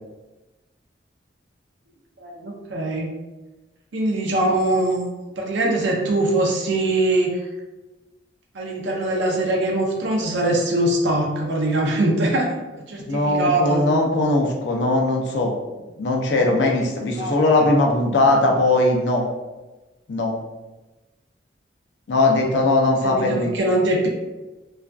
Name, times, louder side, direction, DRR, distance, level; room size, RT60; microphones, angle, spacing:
voice 1, 2.2-3.1 3.9-5.0 5.4-7.4 8.5-12.5 12.9-13.8 17.2-17.7 23.0-24.1, right 1 dB, 75° right, 0 dB, 0.5 m, -22 dB
voice 2, 13.1-15.5 16.0-19.3 20.1-20.3 22.1-23.5, left 2 dB, 70° left, 1 dB, 0.4 m, -19 dB
2.5 x 2.3 x 2.2 m, 1.1 s
head